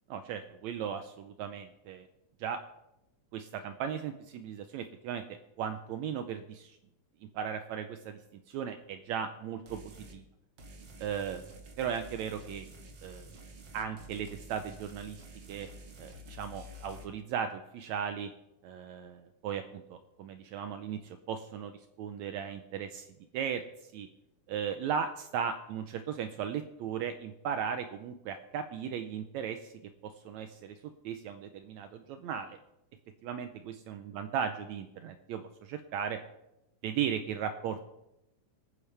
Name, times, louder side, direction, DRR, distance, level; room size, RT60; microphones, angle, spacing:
voice 1, 0.1-2.1 2.4-2.6 3.3-5.2 5.6-6.8 7.3-9.8 10.1-10.2 11.0-11.4 11.8-12.7 13.0-13.3 13.7-15.7 16.0-18.3 18.6-23.1 23.3-24.1 24.5-29.7 30.0-30.8 31.0-32.6 33.2-36.2 36.8-37.8, right 8 dB, 75° right, 8 dB, 2.0 m, -37 dB
sound 1, 9.7-10.2 10.6-17.0, equal, 45° right, 1.8 m, -50 dB
25.5 x 9.7 x 3.4 m, 0.88 s
omnidirectional pair, 3.4 m